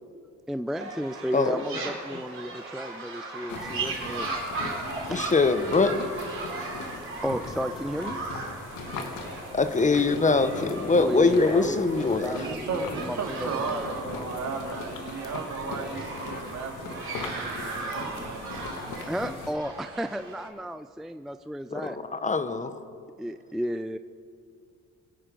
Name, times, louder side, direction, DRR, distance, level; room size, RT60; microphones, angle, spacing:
voice 1, 0.5-4.3 5.1-5.3 7.2-8.1 11.0-13.9 18.1-18.3 19.1-22.0 23.2-24.0, equal, ahead, 10 dB, 0.3 m, -33 dB
sound 1, 0.8-20.5, right 3 dB, 45° right, 4.2 m, -38 dB
sound 2, 3.5-19.5, left 3 dB, 90° left, 1.5 m, -39 dB
voice 2, 5.1-6.1 9.5-12.5 21.7-22.8, left 3 dB, 25° left, 11 dB, 0.8 m, -23 dB
voice 3, 12.4-18.7 19.0-19.1, right 4 dB, 65° right, 4 dB, 2.1 m, -35 dB
24.0 x 8.7 x 5.2 m, 2.3 s
cardioid pair, 90°, 30 cm